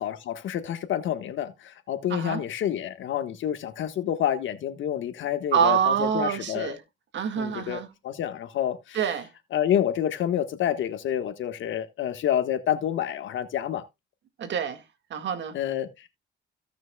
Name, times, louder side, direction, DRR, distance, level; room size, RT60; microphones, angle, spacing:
voice 1, 0.0-6.8 7.4-9.0 9.5-13.8 15.5-16.1, left 10 dB, 75° left, 1.4 m, -28 dB
voice 2, 2.1-2.4 5.5-6.8 7.1-7.9 8.9-9.3 14.4-14.8 15.1-15.6, right 8 dB, 65° right, 1.9 m, -26 dB
16.5 x 6.1 x 2.3 m
cardioid pair, 90°, 20 cm